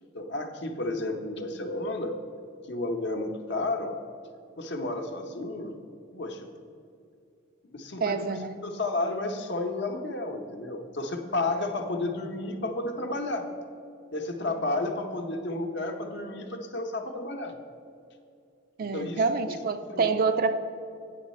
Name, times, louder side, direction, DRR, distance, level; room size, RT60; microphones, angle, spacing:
voice 1, 0.1-2.2 2.7-3.9 4.6-5.8 6.1-6.5 7.7-8.2 8.6-13.5 14.1-17.6 18.8-19.6 19.9-20.1, left 2 dB, 60° left, 5 dB, 0.7 m, -32 dB
voice 2, 8.0-8.5 18.8-20.6, right 4 dB, 50° right, 9 dB, 0.4 m, -27 dB
9.1 x 6.3 x 4.1 m, 2.6 s
head